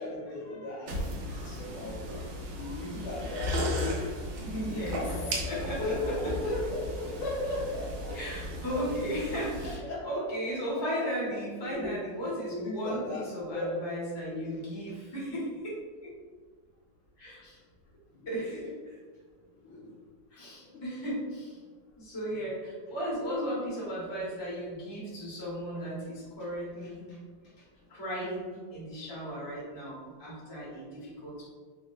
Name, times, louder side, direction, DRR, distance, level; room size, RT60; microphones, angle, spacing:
voice 1, 0.0-3.5 4.5-8.2 8.7-8.9 9.6-11.1 11.6-11.9 12.4-13.6 14.3-14.5 18.1-18.6 19.6-19.9 20.6-20.8, left 2 dB, 70° left, -5 dB, 1.3 m, -37 dB
sound 1, 0.9-9.8, left 1 dB, 85° right, 0.8 m, -35 dB
voice 2, 4.4-5.9 8.1-15.7 17.2-17.6 18.3-18.7 20.3-21.6 22.0-27.2 27.9-31.5, equal, 40° left, -8 dB, 0.3 m, -36 dB
4.0 x 2.1 x 2.3 m, 1.5 s
omnidirectional pair, 2.3 m